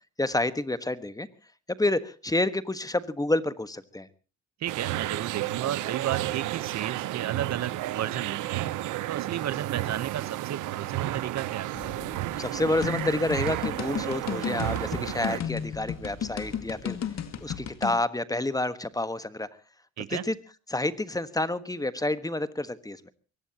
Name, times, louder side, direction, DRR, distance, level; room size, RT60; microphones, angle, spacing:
voice 1, 0.2-1.3 1.7-4.1 12.4-17.0 17.4-19.5 20.1-20.4 20.7-23.0, left 2 dB, 10° left, 14 dB, 1.3 m, -29 dB
voice 2, 4.6-8.7 9.1-11.7 20.0-20.2, right 11 dB, 60° right, 18 dB, 1.0 m, -33 dB
sound 1, 4.7-15.4, right 15 dB, 90° right, 0.9 m, -32 dB
Thunder / Rain, 11.7-17.6, left 3 dB, 40° left, 7.6 m, -48 dB
sound 2, 12.8-18.0, left 8 dB, 60° left, 2.1 m, -33 dB
23.0 x 18.5 x 2.9 m, 0.34 s
cardioid pair, 90°, 30 cm